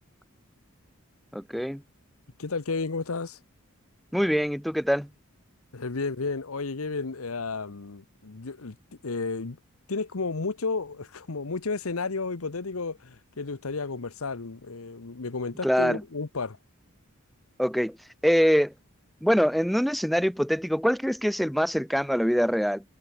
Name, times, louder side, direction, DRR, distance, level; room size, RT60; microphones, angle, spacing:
voice 1, 1.3-1.8 4.1-5.1 15.6-16.0 17.6-18.0 18.2-18.7 19.2-22.8, equal, ahead, 0.4 m, -24 dB
voice 2, 2.4-3.4 5.7-8.8 9.0-9.6 9.9-16.6, left 4 dB, 75° left, 1.0 m, -32 dB
head